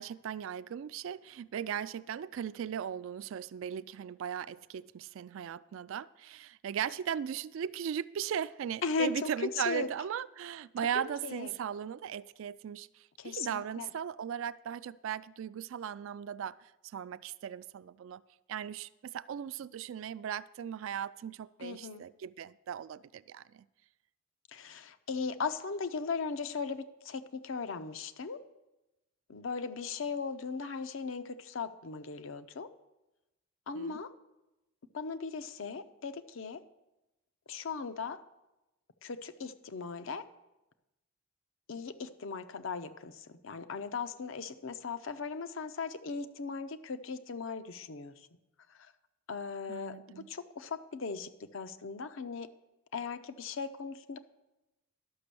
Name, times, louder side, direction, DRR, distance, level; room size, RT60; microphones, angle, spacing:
voice 1, 0.0-16.6 16.9-18.2 18.5-23.6 33.8-34.0 49.7-50.3, right 8 dB, 65° right, 0.3 m, -38 dB
voice 2, 8.8-9.3 9.5-9.9 10.9-11.5 13.2-13.9 21.6-22.0 24.5-28.4 29.3-32.7 33.7-34.1 34.9-36.6 37.5-38.2 39.0-40.3 41.7-48.1 48.7-48.9 49.3-50.0 50.3-52.5 52.9-54.2, left 5 dB, 65° left, 0.6 m, -38 dB
11.5 x 6.1 x 6.8 m
head